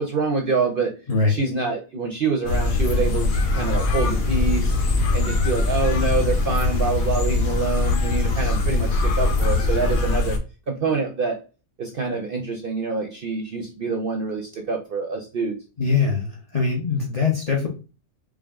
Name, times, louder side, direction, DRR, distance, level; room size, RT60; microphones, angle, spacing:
voice 1, 0.0-0.9 1.3-4.7 5.1-10.3 10.7-11.4 11.8-15.6, right 4 dB, 55° right, 2 dB, 0.6 m, -26 dB
sound 1, 2.5-10.4, left 3 dB, 75° left, 1.3 m, -22 dB
voice 2, 15.8-17.7, left 4 dB, 35° left, 0 dB, 0.7 m, -22 dB
4.8 x 2.0 x 3.5 m, 0.33 s
omnidirectional pair, 1.5 m